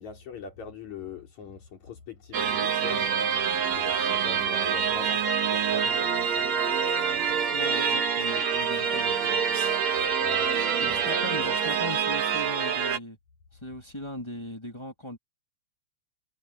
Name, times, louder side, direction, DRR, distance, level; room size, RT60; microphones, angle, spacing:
voice 1, 0.0-3.1 3.6-6.5 10.2-11.1, left 4 dB, 70° left, 4.8 m, -42 dB
sound 1, 2.3-13.0, right 7 dB, 65° right, 2.8 m, -26 dB
voice 2, 7.5-9.4 10.8-13.2 13.6-15.2, left 1 dB, 10° left, 2.1 m, -39 dB
omnidirectional pair, 3.4 m